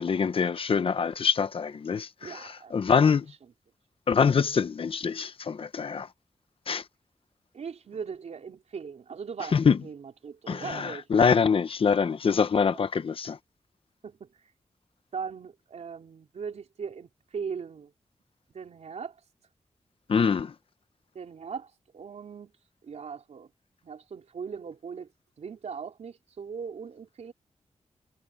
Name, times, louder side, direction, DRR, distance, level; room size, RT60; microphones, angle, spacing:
voice 1, 0.0-3.3 4.1-6.1 6.7-6.8 9.5-9.8 10.5-13.4 20.1-20.5, left 6 dB, 50° left, 0.8 m, -24 dB
voice 2, 2.2-2.9 7.5-11.2 12.7-12.8 14.0-14.3 15.1-17.9 18.5-19.2 21.1-22.5 22.8-23.5 23.8-25.1 25.4-27.3, right 6 dB, 75° right, 3.9 m, -39 dB
wide cardioid pair, 180°, 12 cm